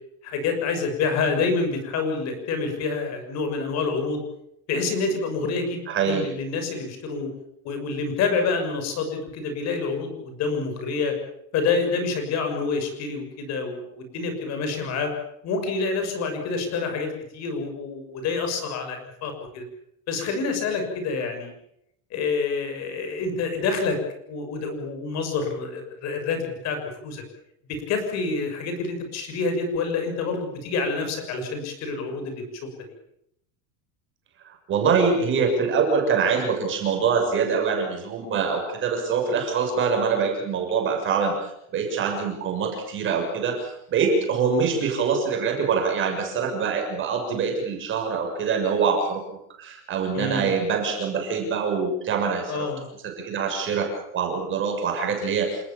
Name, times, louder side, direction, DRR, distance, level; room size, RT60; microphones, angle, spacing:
voice 1, 0.2-4.2 4.7-7.3 7.6-11.1 11.5-15.1 15.4-19.6 20.1-21.5 22.1-24.0 24.3-27.2 27.7-32.5 50.1-50.5 52.5-52.8, left 4 dB, 40° left, 6 dB, 6.8 m, -27 dB
voice 2, 5.9-6.2 34.4-49.2 49.6-52.7 53.0-55.6, right 5 dB, 30° right, 3 dB, 6.6 m, -24 dB
28.5 x 19.5 x 7.3 m, 0.76 s
cardioid pair, 170°, 42 cm